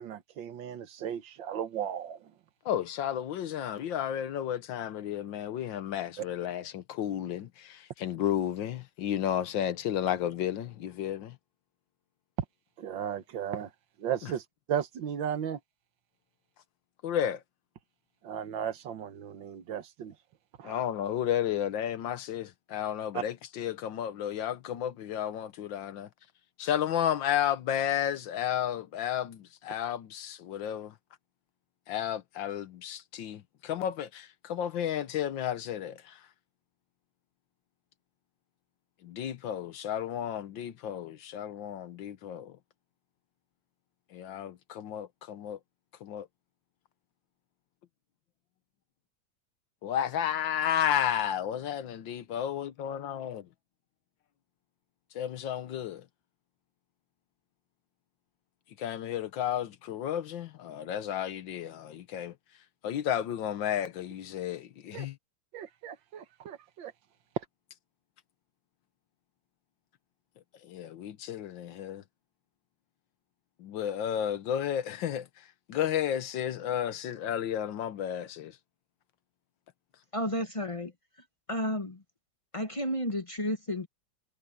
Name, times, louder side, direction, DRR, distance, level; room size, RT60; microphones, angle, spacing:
voice 1, 0.0-2.3 6.2-6.3 12.8-13.7 14.0-14.4 14.7-15.6 18.2-20.1 20.6-20.8 23.1-23.2 64.9-65.1 65.5-66.9, right 9 dB, 75° right, 1.8 m, -35 dB
voice 2, 2.7-11.4 14.2-14.3 17.0-17.4 20.6-26.1 26.6-30.9 31.9-36.2 39.0-42.5 44.1-45.6 46.0-46.3 49.8-53.5 55.2-56.0 58.8-62.3 62.8-65.2 70.6-72.0 73.6-75.3 75.7-78.5, left 10 dB, 75° left, 1.6 m, -32 dB
voice 3, 80.1-80.9 81.5-82.0 82.5-83.9, equal, 20° left, 0.9 m, -32 dB
omnidirectional pair, 2.1 m